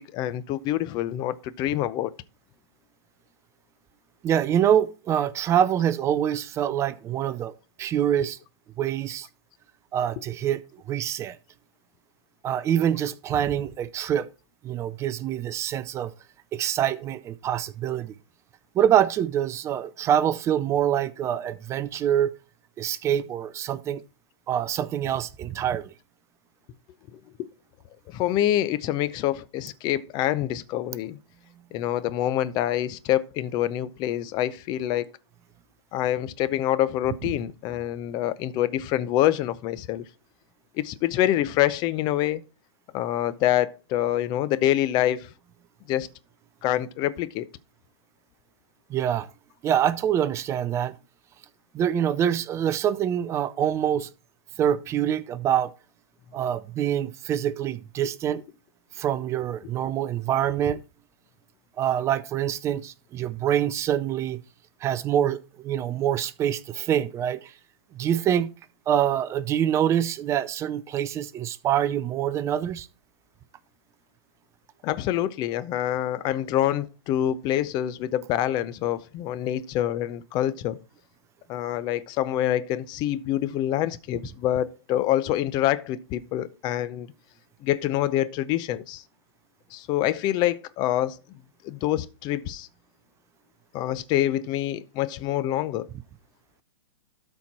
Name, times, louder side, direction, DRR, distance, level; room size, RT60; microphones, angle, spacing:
voice 1, 0.0-2.1 27.1-27.2 28.1-31.2 31.7-35.1 35.9-40.0 40.8-42.4 42.9-45.3 45.9-46.1 46.6-47.5 74.8-80.8 81.5-87.1 87.6-89.0 89.7-91.2 91.6-92.7 93.7-95.9, left 12 dB, 25° left, 0.6 m, -26 dB
voice 2, 4.2-7.5 7.8-8.4 8.8-9.3 9.9-10.6 10.9-11.4 12.4-14.3 14.6-16.1 16.5-18.1 18.7-22.3 22.8-24.0 24.5-25.9 48.9-49.3 49.6-51.0 51.7-54.1 54.6-55.7 56.3-58.4 58.9-60.8 61.8-64.4 64.8-67.5 67.9-68.5 68.9-72.9, right 10 dB, 20° right, 0.4 m, -25 dB
12.5 x 4.5 x 4.2 m
hypercardioid pair, 130°, 16 cm